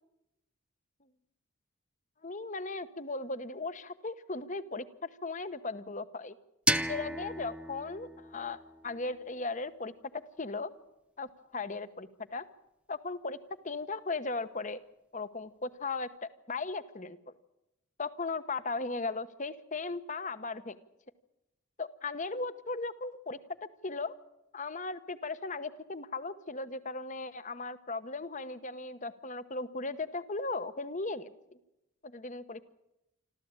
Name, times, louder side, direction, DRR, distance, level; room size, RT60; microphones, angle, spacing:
voice 1, 2.2-6.3 6.9-10.7 11.2-12.4 12.9-13.4 13.6-14.8 15.1-17.3 18.0-20.8 21.8-23.4 23.8-24.1 24.5-31.3 32.0-32.7, left 3 dB, 35° left, 13 dB, 1.1 m, -37 dB
sound 1, 6.7-9.5, right 1 dB, 5° right, 0.7 m, -34 dB
27.0 x 13.5 x 8.9 m, 0.88 s
head